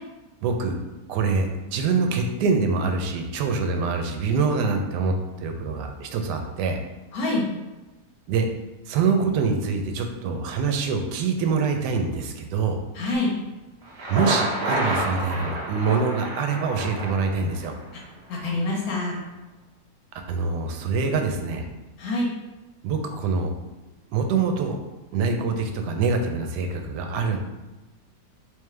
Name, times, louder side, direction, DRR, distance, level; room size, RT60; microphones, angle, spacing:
voice 1, 0.4-0.8 1.1-6.8 8.3-8.5 8.9-12.8 14.1-17.7 20.3-21.7 22.8-23.5 24.1-24.8 25.1-27.4, right 4 dB, 85° right, 5 dB, 1.2 m, -25 dB
voice 2, 7.1-7.5 12.9-13.3 18.3-19.2 22.0-22.3, left 2 dB, 65° left, -3 dB, 1.4 m, -25 dB
Thunder, 13.8-17.8, right 1 dB, 50° right, 0.8 m, -29 dB
3.6 x 3.1 x 3.2 m, 1.1 s
omnidirectional pair, 1.7 m